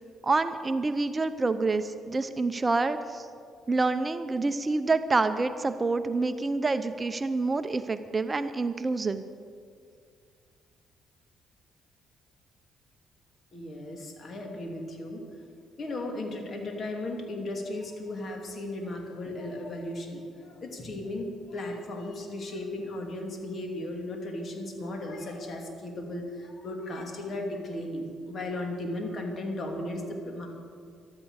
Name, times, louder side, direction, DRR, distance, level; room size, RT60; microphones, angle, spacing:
voice 1, 0.2-3.3 3.7-9.2, right 3 dB, 30° right, 10 dB, 0.7 m, -27 dB
voice 2, 13.5-15.5 15.8-30.5, left 1 dB, 50° left, 2 dB, 2.7 m, -36 dB
13.5 x 12.5 x 6.5 m, 2.2 s
cardioid pair, 75°, 0 cm